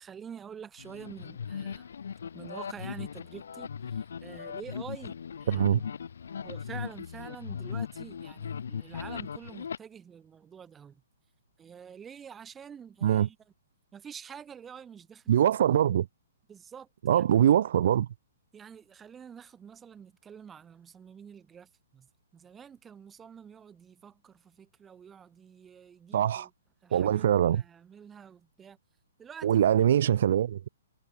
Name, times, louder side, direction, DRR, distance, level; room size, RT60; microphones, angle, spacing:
voice 1, 0.0-1.9 2.3-5.6 6.4-11.0 11.6-13.4 13.9-15.3 16.5-17.2 18.5-26.5 26.8-28.8 29.2-29.5 29.9-30.2, right 7 dB, 10° right, 3.6 m, -47 dB
sound 1, 0.8-9.8, left 7 dB, 70° left, 5.7 m, -38 dB
voice 2, 5.5-5.8 13.0-13.3 15.3-16.1 17.0-18.1 26.1-26.5 26.9-27.6 29.4-30.7, right 10 dB, 45° right, 0.4 m, -23 dB
hypercardioid pair, 175°, 0 cm